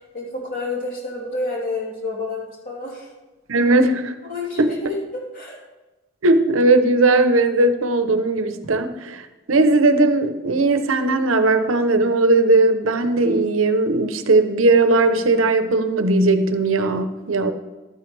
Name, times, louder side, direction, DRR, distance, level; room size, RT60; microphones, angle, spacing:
voice 1, 0.1-3.1 4.2-5.6, left 2 dB, 45° left, -4 dB, 3.2 m, -29 dB
voice 2, 3.5-4.1 4.6-4.7 6.2-17.5, right 2 dB, 85° right, 9 dB, 0.8 m, -18 dB
12.5 x 9.5 x 3.3 m, 1.1 s
head